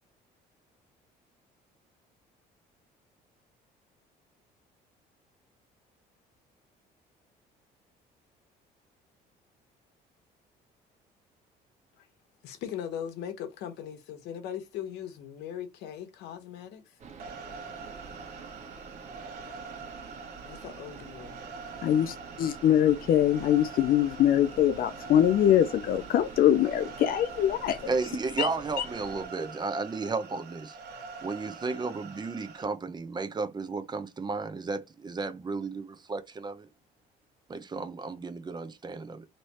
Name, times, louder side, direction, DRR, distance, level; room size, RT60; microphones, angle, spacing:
voice 1, 12.4-16.9 20.4-21.4, left 9 dB, 85° left, 1.0 m, -39 dB
sound 1, 17.0-29.3, right 5 dB, 45° right, 1.3 m, -47 dB
sound 2, 17.2-32.6, right 4 dB, 70° right, 1.3 m, -45 dB
voice 2, 22.4-27.9 28.4-28.5 28.8-28.9, left 11 dB, 60° left, 0.5 m, -23 dB
voice 3, 27.9-30.8 31.2-36.7 37.5-39.2, right 4 dB, 25° right, 0.7 m, -33 dB
3.3 x 3.0 x 4.1 m
cardioid pair, 110°, 17 cm